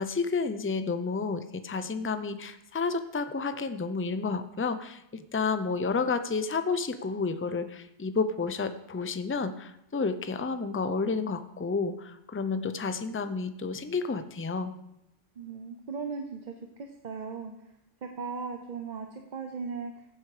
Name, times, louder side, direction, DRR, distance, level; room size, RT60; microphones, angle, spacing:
voice 1, 0.0-14.7, left 4 dB, 15° left, 10 dB, 0.5 m, -31 dB
voice 2, 15.4-16.5 16.8-17.5 18.0-20.1, right 5 dB, 40° right, 5 dB, 0.9 m, -37 dB
15.5 x 8.2 x 5.0 m, 0.82 s
omnidirectional pair, 1.2 m